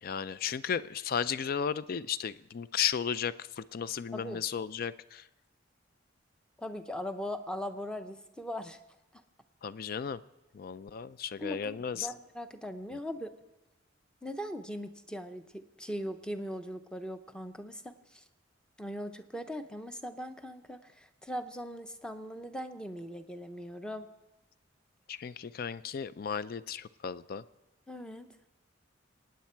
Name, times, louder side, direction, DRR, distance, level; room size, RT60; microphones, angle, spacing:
voice 1, 0.0-5.3 9.6-10.2 10.5-12.1 12.9-13.0 25.1-27.4, left 7 dB, 50° left, 16 dB, 0.4 m, -34 dB
voice 2, 6.6-8.8 11.4-13.3 14.2-18.2 18.8-24.1 27.9-28.3, equal, 5° left, 8 dB, 0.7 m, -40 dB
24.5 x 9.4 x 4.5 m, 1.0 s
head